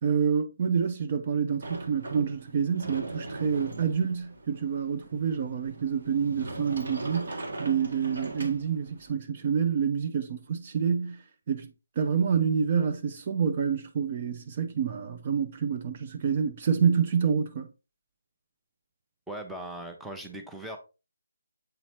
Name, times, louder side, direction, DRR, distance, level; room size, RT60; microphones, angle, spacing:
voice 1, 0.0-17.7, right 7 dB, 35° right, 0.5 m, -28 dB
Sliding door, 1.6-9.1, right 2 dB, 55° right, 1.5 m, -40 dB
voice 2, 19.3-20.8, right 1 dB, ahead, 0.7 m, -39 dB
7.9 x 4.1 x 3.0 m
figure-of-eight pair, 150°, 0 cm